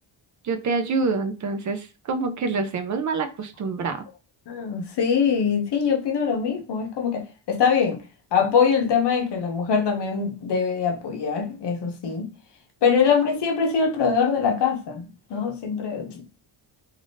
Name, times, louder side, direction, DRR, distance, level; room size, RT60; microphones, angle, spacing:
voice 1, 0.4-4.0, right 4 dB, 40° right, 0.5 m, -26 dB
voice 2, 4.5-8.0 8.3-12.3 12.8-16.2, left 6 dB, 65° left, 0.7 m, -23 dB
3.4 x 2.5 x 2.6 m
cardioid pair, 140°, 46 cm